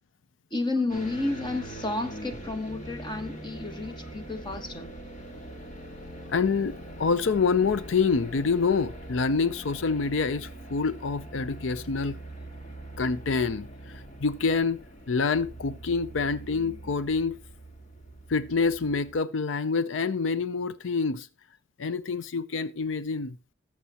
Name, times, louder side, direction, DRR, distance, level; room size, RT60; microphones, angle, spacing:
voice 1, 0.5-4.9, left 2 dB, 25° left, 1.3 m, -31 dB
sound 1, 0.9-19.2, right 1 dB, 40° left, 1.9 m, -42 dB
voice 2, 6.3-12.2 13.0-13.7 13.9-14.8 15.1-17.4 18.3-21.3 21.8-23.4, left 4 dB, 85° left, 0.5 m, -26 dB
18.0 x 7.4 x 2.9 m
head